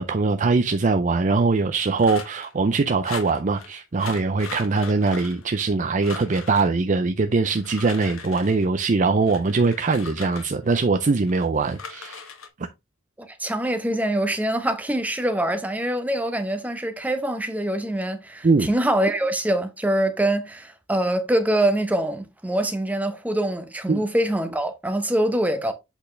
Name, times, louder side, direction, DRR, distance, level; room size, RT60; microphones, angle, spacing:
voice 1, 0.0-12.2 18.4-18.7 23.9-24.0, right 4 dB, 40° right, 0.5 m, -22 dB
sound 1, 2.0-2.5 3.0-3.7 4.0-5.8 6.0-6.7 7.4-8.7 9.2-10.9 11.3-12.5, left 5 dB, 90° left, 1.4 m, -39 dB
voice 2, 13.2-25.7, right 1 dB, 10° right, 0.8 m, -24 dB
8.0 x 4.2 x 3.2 m
head